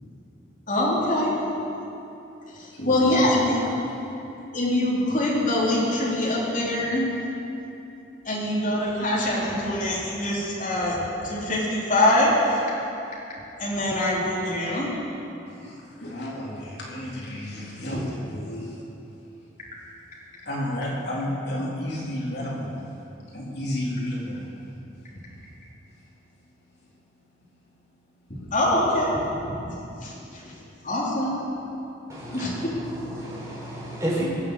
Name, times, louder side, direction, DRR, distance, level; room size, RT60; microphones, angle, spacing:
voice 1, 0.7-1.4 2.5-3.7 4.5-7.2 8.2-12.6 13.6-15.0 28.5-29.2 30.0-30.5 30.8-31.4 32.3-32.7, left 1 dB, 40° left, -6 dB, 3.6 m, -24 dB
voice 2, 2.7-3.2 15.5-18.8 20.5-22.7 23.3-24.5, left 1 dB, 60° left, -5 dB, 3.5 m, -31 dB
voice 3, 32.1-34.2, right 1 dB, 15° right, -6 dB, 4.5 m, -32 dB
22.0 x 7.7 x 8.2 m, 2.9 s
head